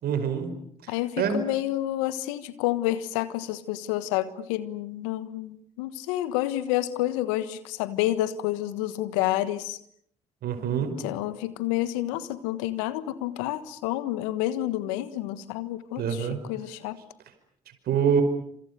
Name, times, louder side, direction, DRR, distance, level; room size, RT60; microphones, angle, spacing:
voice 1, 0.0-0.6 1.2-1.4 10.4-10.9 16.0-16.4 17.9-18.2, right 7 dB, 70° right, 9 dB, 5.1 m, -25 dB
voice 2, 0.9-9.8 11.0-17.0, left 14 dB, 85° left, 15 dB, 1.4 m, -29 dB
29.0 x 27.0 x 6.9 m, 0.64 s
hypercardioid pair, 45°, 17 cm